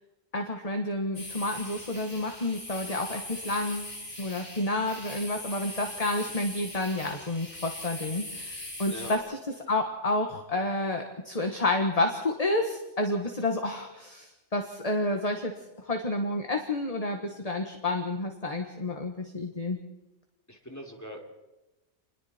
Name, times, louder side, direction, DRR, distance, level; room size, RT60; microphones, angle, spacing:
voice 1, 0.3-3.9 4.2-9.4 9.7-15.5 15.9-19.8, left 2 dB, 30° left, 4 dB, 1.6 m, -30 dB
sound 1, 1.1-9.2, left 1 dB, 80° left, 5.6 m, -41 dB
voice 2, 20.5-21.3, equal, 15° left, 1 dB, 3.2 m, -41 dB
28.5 x 21.0 x 4.4 m, 1.0 s
omnidirectional pair, 1.2 m